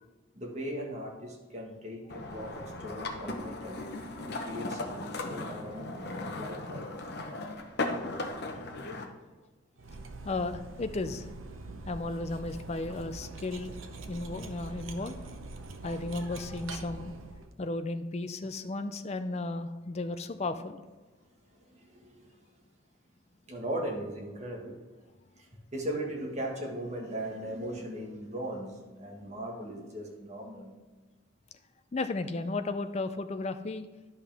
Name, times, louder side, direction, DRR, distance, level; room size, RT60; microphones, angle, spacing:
voice 1, 0.3-3.8 4.1-6.9 21.5-22.4 23.5-24.8 25.4-30.8, right 1 dB, 35° right, -1 dB, 1.6 m, -38 dB
sound 1, 2.1-9.1, left 2 dB, 50° left, 0.8 m, -37 dB
Cutlery silverware, 9.8-17.5, right 3 dB, 80° right, 0.8 m, -43 dB
voice 2, 10.2-11.3 11.9-13.8 14.1-15.2 15.8-17.1 17.6-20.8 31.9-33.9, left 2 dB, 30° left, 10 dB, 0.4 m, -34 dB
11.5 x 5.5 x 3.5 m, 1.3 s
head